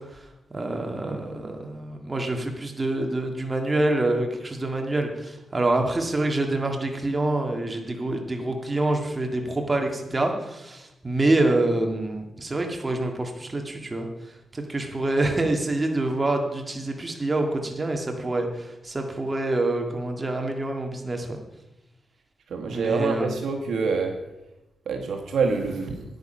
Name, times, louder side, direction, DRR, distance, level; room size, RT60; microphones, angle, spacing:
voice 1, 0.5-14.1 14.5-21.4 22.7-23.3, right 2 dB, 25° right, 3 dB, 1.8 m, -26 dB
voice 2, 22.5-24.2 24.9-26.0, right 4 dB, 80° right, 3 dB, 1.5 m, -26 dB
9.8 x 9.5 x 5.5 m, 0.96 s
cardioid pair, 90°, 0 cm